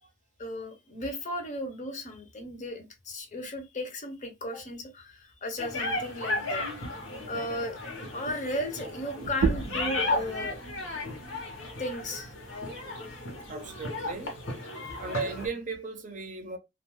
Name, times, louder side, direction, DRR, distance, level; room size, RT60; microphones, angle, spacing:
voice 1, 0.4-6.6 7.3-7.8 8.1-10.6 11.8-12.3, left 1 dB, 40° left, 0.7 m, -35 dB
sound 1, 5.6-15.5, left 2 dB, 85° left, 1.0 m, -35 dB
sound 2, 9.2-14.4, right 5 dB, 90° right, 0.4 m, -35 dB
voice 2, 13.5-14.4 15.0-16.6, right 4 dB, 40° right, 0.5 m, -36 dB
2.3 x 2.3 x 3.0 m
head